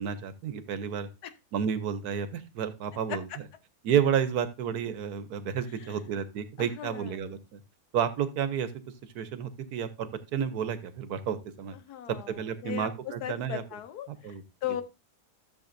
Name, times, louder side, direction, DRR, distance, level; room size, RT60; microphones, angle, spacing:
voice 1, 0.0-1.1 1.5-3.4 3.8-7.6 7.9-8.7 9.1-11.7 12.3-13.6 14.1-14.4, right 8 dB, 80° right, 12 dB, 1.4 m, -31 dB
voice 2, 6.6-7.1 11.9-12.3 12.6-12.9 13.2-14.1 14.6-14.8, left 11 dB, 85° left, 10 dB, 1.4 m, -36 dB
13.5 x 7.1 x 2.6 m, 0.25 s
omnidirectional pair, 1.6 m